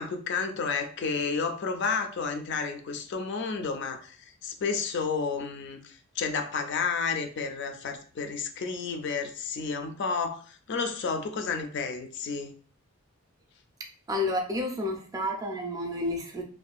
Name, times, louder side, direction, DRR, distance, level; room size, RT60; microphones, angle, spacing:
voice 1, 0.0-12.5, left 5 dB, 55° left, 6 dB, 0.4 m, -31 dB
voice 2, 14.1-16.4, left 1 dB, 15° right, 2 dB, 0.4 m, -30 dB
2.6 x 2.2 x 2.3 m, 0.43 s
head